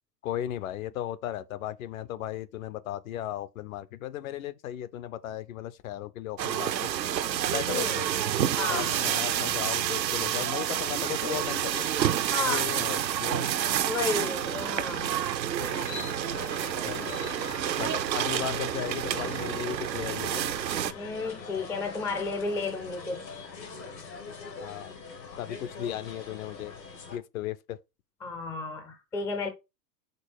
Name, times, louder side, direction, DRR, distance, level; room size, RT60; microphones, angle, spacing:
voice 1, 0.2-6.9 7.5-8.2 8.7-11.9 12.4-13.9 16.7-17.2 17.8-20.4 24.6-25.0 25.4-26.7 27.1-27.8, left 12 dB, 55° left, 0.7 m, -36 dB
sound 1, 6.4-20.9, right 10 dB, 85° right, 0.8 m, -29 dB
voice 2, 7.7-8.0 8.6-9.0 12.3-12.7 13.8-15.1 20.9-23.3 23.8-24.1 28.2-29.5, left 3 dB, 5° left, 0.4 m, -32 dB
sound 2, 15.6-27.2, left 4 dB, 85° left, 2.5 m, -43 dB
5.4 x 3.9 x 4.6 m
hypercardioid pair, 110°, 50 cm